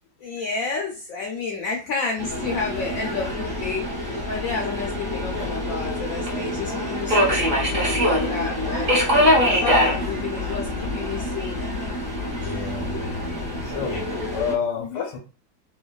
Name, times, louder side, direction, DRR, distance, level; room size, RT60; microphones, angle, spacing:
voice 1, 0.2-8.9 9.5-11.6 12.3-12.6 13.0-14.3 14.8-15.1, left 4 dB, 70° left, 0 dB, 0.8 m, -31 dB
Subway metro underground, 2.2-14.5, left 1 dB, 40° right, 0.8 m, -24 dB
voice 2, 12.4-14.0 14.3-15.2, left 6 dB, 85° left, 2 dB, 1.4 m, -30 dB
3.1 x 2.2 x 2.2 m, 0.33 s
omnidirectional pair, 1.9 m